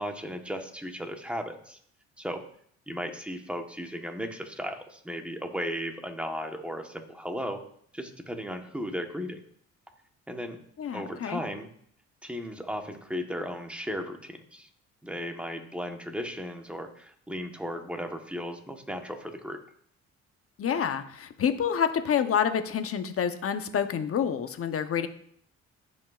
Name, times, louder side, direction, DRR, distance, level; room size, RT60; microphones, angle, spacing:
voice 1, 0.0-1.8 2.2-2.4 2.9-7.6 7.9-9.4 10.3-10.6 10.9-11.7 12.2-14.7 15.0-19.6, equal, 5° right, 4 dB, 1.1 m, -35 dB
voice 2, 10.8-11.4 20.6-25.1, left 8 dB, 50° left, 9 dB, 0.8 m, -28 dB
15.0 x 5.3 x 2.4 m, 0.64 s
cardioid pair, 90°, 30 cm